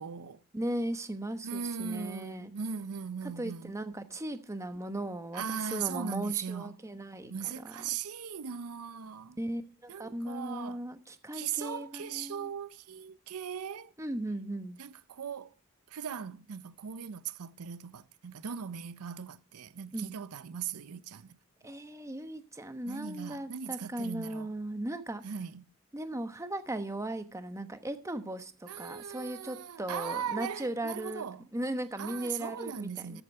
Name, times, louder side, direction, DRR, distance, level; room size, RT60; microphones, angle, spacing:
voice 1, 0.0-0.4 1.4-3.7 5.3-6.7 7.3-9.4 9.9-10.8 11.3-13.9 14.8-15.6 15.9-21.4 22.9-24.5 25.2-25.6 28.7-31.5 32.0-33.2, right 7 dB, 85° right, 0.6 m, -39 dB
voice 2, 0.5-2.5 3.2-7.8 9.4-12.5 14.0-14.8 19.9-20.1 21.6-25.2 25.9-31.2 31.5-33.2, right 1 dB, 15° right, 1.0 m, -37 dB
13.5 x 8.1 x 4.3 m
head